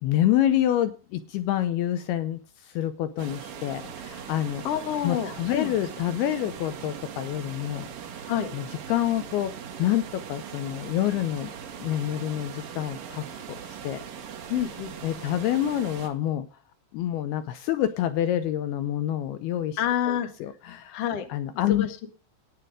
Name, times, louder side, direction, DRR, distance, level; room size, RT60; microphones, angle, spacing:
voice 1, 0.0-4.6 5.0-7.9 8.2-8.3 8.5-9.5 9.8-11.5 11.8-14.0 15.0-16.5 16.9-19.8 20.1-21.0 21.3-21.9, left 12 dB, 80° left, 11 dB, 2.5 m, -27 dB
sound 1, 3.2-16.1, right 8 dB, 60° right, 3.3 m, -40 dB
voice 2, 4.6-5.8 8.3-8.5 14.5-15.0 19.8-20.3 20.9-21.3 21.7-22.1, left 10 dB, 55° left, 6 dB, 1.9 m, -28 dB
13.5 x 9.6 x 4.9 m, 0.37 s
omnidirectional pair, 4.9 m